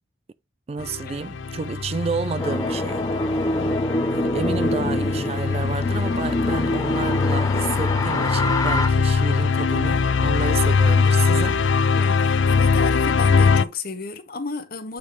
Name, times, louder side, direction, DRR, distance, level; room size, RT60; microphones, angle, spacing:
voice 1, 0.7-3.6 4.1-11.7, right 5 dB, 30° right, 0.3 m, -30 dB
sound 1, 0.8-13.6, left 5 dB, 70° left, 0.4 m, -22 dB
sound 2, 2.4-8.9, left 1 dB, 20° left, 0.6 m, -25 dB
voice 2, 3.4-3.8 11.9-15.0, left 3 dB, 50° left, 0.9 m, -33 dB
8.2 x 3.4 x 3.8 m
head